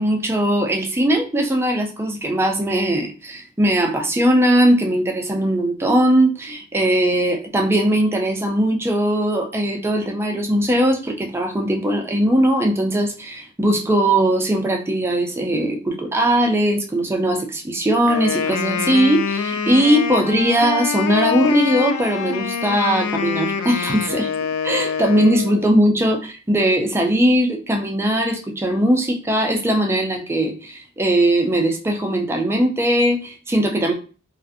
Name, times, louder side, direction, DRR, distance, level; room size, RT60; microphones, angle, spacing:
voice 1, 0.0-24.3 24.6-33.9, right 1 dB, 10° right, 3 dB, 0.3 m, -19 dB
Wind instrument woodwind instrument, 18.1-25.7, left 6 dB, 80° left, 0.3 m, -25 dB
2.4 x 2.4 x 2.4 m, 0.37 s
head